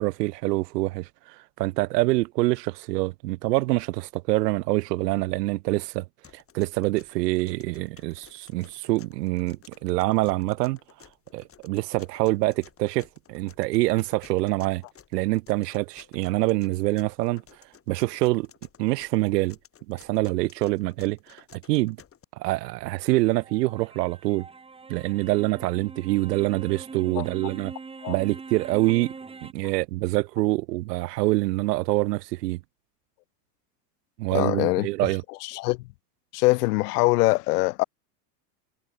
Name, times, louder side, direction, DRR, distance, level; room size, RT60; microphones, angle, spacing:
voice 1, 0.0-6.0 6.3-10.8 11.3-14.8 15.1-17.4 17.9-18.5 18.8-19.6 19.9-22.0 22.4-24.5 24.9-27.7 28.1-29.1 29.4-32.6 34.2-35.2, right 20 dB, 80° right, 0.7 m, -25 dB
sound 1, 6.2-22.3, left 8 dB, 30° left, 5.2 m, -54 dB
sound 2, 23.0-29.5, right 4 dB, 10° right, 1.4 m, -43 dB
voice 2, 34.3-34.9 35.4-35.9 36.3-37.8, left 22 dB, 75° left, 0.7 m, -23 dB
supercardioid pair, 110°, 48 cm